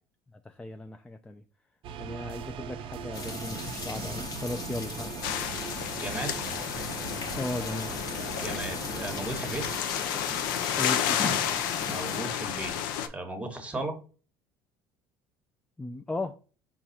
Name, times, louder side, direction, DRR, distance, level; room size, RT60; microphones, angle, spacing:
voice 1, 0.5-1.4 2.0-5.1 7.4-7.9 10.8-11.2 15.8-16.3, left 2 dB, 10° left, 0.3 m, -36 dB
sound 1, 1.8-9.8, right 7 dB, 55° right, 0.4 m, -40 dB
sound 2, 3.1-12.2, left 4 dB, 35° left, 0.9 m, -38 dB
sound 3, 5.2-13.1, left 10 dB, 85° left, 0.4 m, -32 dB
voice 2, 6.0-6.5 8.4-9.8 11.8-14.0, right 2 dB, 10° right, 1.0 m, -36 dB
4.6 x 2.4 x 4.0 m
supercardioid pair, 80°, 11 cm